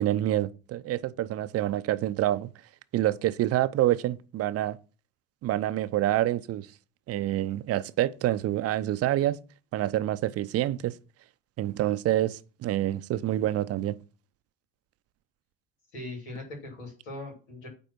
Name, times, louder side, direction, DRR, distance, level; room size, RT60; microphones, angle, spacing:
voice 1, 0.0-2.5 2.9-4.8 5.4-6.7 7.1-9.4 9.7-10.9 11.6-14.0, right 13 dB, 50° right, 0.6 m, -27 dB
voice 2, 15.9-17.7, left 2 dB, 75° left, 3.2 m, -40 dB
9.1 x 3.7 x 5.9 m
figure-of-eight pair, 55°, 32 cm